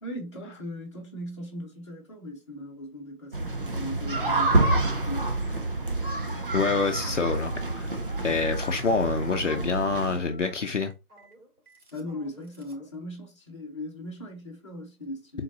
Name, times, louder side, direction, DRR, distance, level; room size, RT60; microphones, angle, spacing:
voice 1, 0.0-5.3 11.9-15.4, left 1 dB, 20° left, 1.0 m, -38 dB
Schoolyard-Helsinki-spring, 3.3-10.2, right 2 dB, 40° right, 0.5 m, -28 dB
Telephone, 6.0-12.9, left 3 dB, 75° right, 2.4 m, -48 dB
voice 2, 6.5-7.9 8.2-10.9, left 4 dB, 55° left, 0.6 m, -26 dB
4.0 x 3.8 x 2.6 m
figure-of-eight pair, 165°, 44 cm